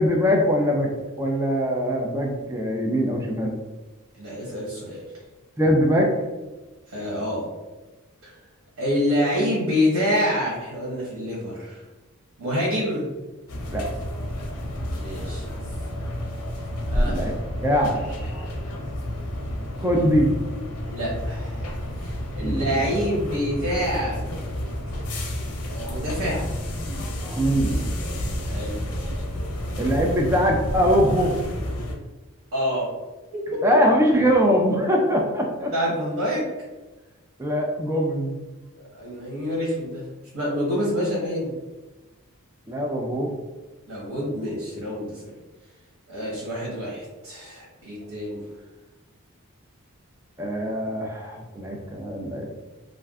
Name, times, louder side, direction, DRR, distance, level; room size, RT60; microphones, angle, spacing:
voice 1, 0.0-3.5 5.6-6.1 13.7-14.1 17.0-17.3 17.6-18.5 19.8-20.3 22.4-22.8 27.2-27.9 29.8-31.4 33.6-35.7 37.4-38.3 42.7-43.3 50.4-52.6, equal, 10° right, 0 dB, 0.3 m, -22 dB
voice 2, 4.1-5.0 6.9-7.5 8.2-8.3 8.8-11.8 12.4-13.1 15.0-15.6 16.9-17.2 20.9-21.7 22.0-24.2 25.7-26.5 28.4-28.8 32.5-32.9 33.5-33.6 35.7-36.4 39.0-41.5 43.9-45.3 46.1-48.4, equal, 90° right, -5 dB, 1.0 m, -27 dB
sound 1, 13.5-32.0, left 1 dB, 85° left, 0.6 m, -30 dB
2.5 x 2.2 x 3.5 m, 1.2 s
head